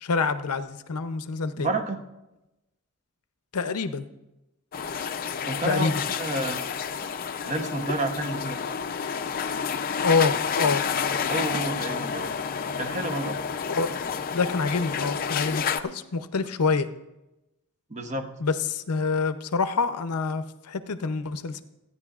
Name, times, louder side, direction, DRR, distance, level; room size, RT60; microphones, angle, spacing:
voice 1, 0.0-1.7 3.5-4.1 5.6-6.0 10.0-10.8 13.7-13.9 14.3-16.9 18.4-21.6, left 4 dB, 85° left, 10 dB, 0.7 m, -26 dB
voice 2, 1.5-2.0 5.4-6.6 7.4-8.7 11.3-12.3 12.8-13.4 17.9-18.3, right 2 dB, 30° right, 7 dB, 0.9 m, -30 dB
sound 1, 4.7-15.8, left 6 dB, 40° left, 0.5 m, -30 dB
28.5 x 9.6 x 2.4 m, 0.97 s
head